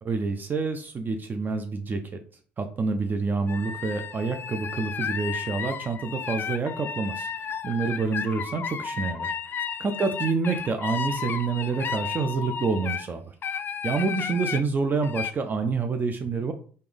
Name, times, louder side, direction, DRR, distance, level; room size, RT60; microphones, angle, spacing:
voice 1, 0.0-2.2 2.6-13.3 13.8-16.5, right 4 dB, 35° right, 6 dB, 0.5 m, -28 dB
sound 1, 3.5-13.1 13.4-14.6 15.0-15.3, left 7 dB, 40° left, 0.4 m, -33 dB
3.4 x 2.7 x 3.4 m, 0.43 s
hypercardioid pair, 60°, 6 cm